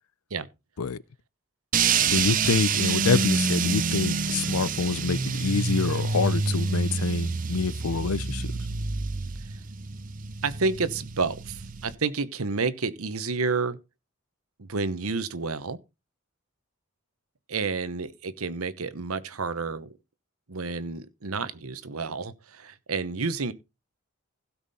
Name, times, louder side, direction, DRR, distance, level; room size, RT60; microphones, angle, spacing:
sound 1, 1.7-11.9, right 5 dB, 35° right, 0.7 m, -27 dB
voice 1, 2.0-8.5, left 5 dB, 85° left, 0.6 m, -26 dB
voice 2, 10.4-13.8 14.6-15.8 17.5-20.0 20.5-23.5, right 4 dB, 80° right, 1.1 m, -30 dB
16.0 x 6.0 x 4.2 m
head